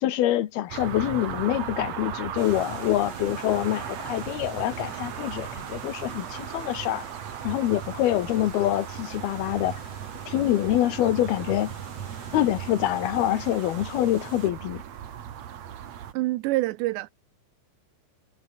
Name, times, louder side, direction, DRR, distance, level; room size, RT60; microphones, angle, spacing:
voice 1, 0.0-7.1 7.4-9.8 10.3-11.7 12.3-14.8, left 13 dB, 70° left, 2.9 m, -25 dB
sound 1, 0.7-16.1, right 9 dB, 55° right, 2.2 m, -37 dB
sound 2, 2.4-14.5, right 4 dB, 35° right, 5.6 m, -44 dB
voice 2, 16.1-17.1, right 18 dB, 90° right, 3.0 m, -26 dB
omnidirectional pair, 5.0 m